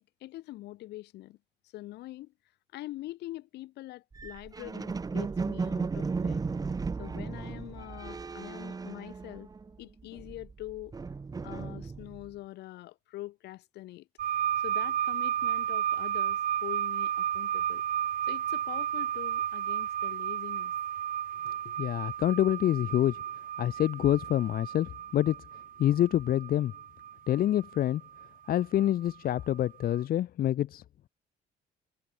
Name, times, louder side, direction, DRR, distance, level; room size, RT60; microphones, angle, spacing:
voice 1, 0.0-1.4 1.6-2.3 2.7-6.4 7.0-9.5 9.8-10.9 11.4-14.1 14.6-17.8 18.3-20.7, left 16 dB, 80° left, 4.6 m, -44 dB
sound 1, 4.1-9.7 10.0-12.3, right 4 dB, 20° right, 1.2 m, -35 dB
sound 2, 14.2-29.1 30.0-30.1, right 10 dB, 55° right, 2.2 m, -33 dB
voice 2, 21.8-23.2 23.6-25.4 25.8-26.7 27.3-28.0 28.5-30.8, left 12 dB, 60° left, 1.5 m, -26 dB
cardioid pair, 110°, 17 cm